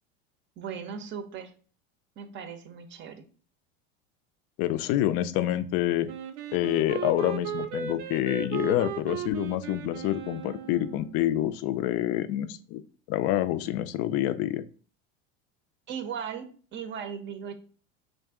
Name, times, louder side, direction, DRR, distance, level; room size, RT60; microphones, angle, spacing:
voice 1, 0.6-1.5 2.2-3.3 15.9-17.5, right 7 dB, 40° right, 9 dB, 0.6 m, -37 dB
voice 2, 4.6-6.1 6.5-12.8 13.1-14.6, left 13 dB, 55° left, 13 dB, 0.4 m, -27 dB
Wind instrument woodwind instrument, 6.1-11.1, right 9 dB, 75° right, 0.6 m, -36 dB
3.7 x 2.5 x 3.6 m, 0.40 s
supercardioid pair, 110°, 30 cm